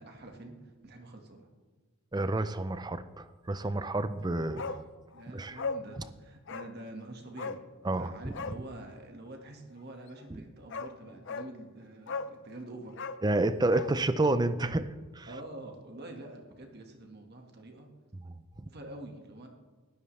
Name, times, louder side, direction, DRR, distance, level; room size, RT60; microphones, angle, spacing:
voice 1, 0.0-1.5 4.5-4.8 5.1-7.6 7.9-13.0 15.3-17.9 18.7-19.5, right 1 dB, 45° right, 3 dB, 1.7 m, -46 dB
voice 2, 2.1-4.7 5.3-5.6 7.8-8.1 10.3-10.4 13.2-14.9 15.1-15.3 18.2-18.7, right 2 dB, 20° right, 13 dB, 0.5 m, -30 dB
Bark, 4.6-4.8 5.1-5.2 5.6-5.8 6.5-6.7 7.4-7.6 8.3-8.6 10.2-10.3 10.7-10.9 11.3-11.5 12.1-12.4 12.9-13.9 14.2-14.3, left 4 dB, 55° left, 0.5 m, -37 dB
19.5 x 12.5 x 3.3 m, 1.4 s
head